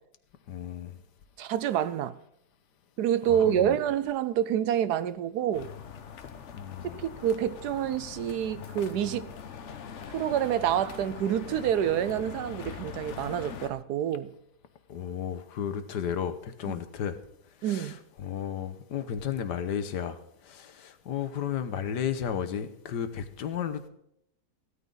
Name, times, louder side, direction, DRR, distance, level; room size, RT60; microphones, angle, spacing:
voice 1, 0.5-1.0 3.3-3.8 6.5-7.0 14.9-17.2 17.6-23.9, left 8 dB, 90° left, 1.6 m, -33 dB
voice 2, 1.4-2.2 3.0-5.7 6.9-9.3 10.1-14.3 16.6-16.8 17.6-18.0, right 10 dB, 75° right, 1.2 m, -28 dB
sound 1, 5.5-13.7, left 7 dB, 55° left, 1.1 m, -42 dB
16.5 x 13.0 x 3.9 m
omnidirectional pair, 1.7 m